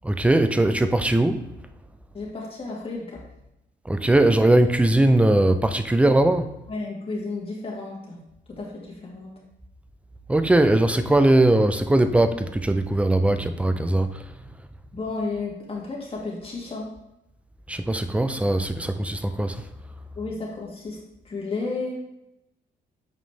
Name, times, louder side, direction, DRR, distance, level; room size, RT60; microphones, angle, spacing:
voice 1, 0.0-1.4 3.9-6.5 10.3-14.2 17.7-19.6, right 1 dB, 5° right, 0.5 m, -20 dB
voice 2, 2.1-3.2 6.7-8.2 8.5-9.3 14.9-16.9 20.2-21.0 21.2-22.0, left 3 dB, 30° left, 2.3 m, -32 dB
7.4 x 4.8 x 3.4 m
cardioid pair, 90°, 20 cm